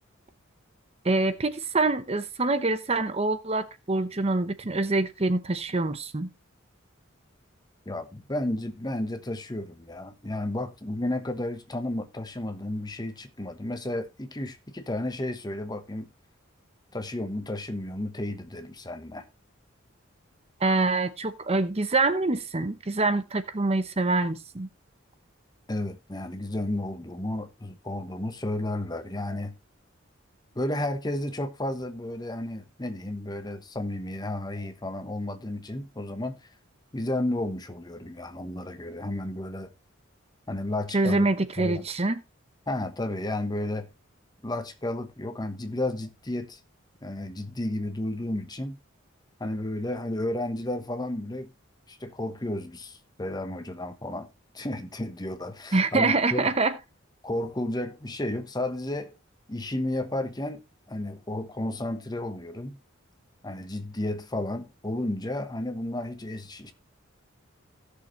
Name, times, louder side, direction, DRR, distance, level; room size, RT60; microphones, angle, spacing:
voice 1, 1.0-6.3 20.6-24.7 40.9-42.2 55.7-56.7, right 3 dB, 30° right, 0.8 m, -25 dB
voice 2, 7.9-16.1 16.9-19.3 25.7-29.5 30.5-36.5 36.9-39.7 40.5-41.3 41.6-41.9 42.7-43.9 44.4-46.6 47.0-48.8 49.4-51.5 51.9-54.3 54.5-56.5 57.2-59.1 59.5-60.6 60.9-62.8 63.4-66.7, left 1 dB, 20° left, 1.1 m, -32 dB
16.5 x 6.5 x 3.1 m
head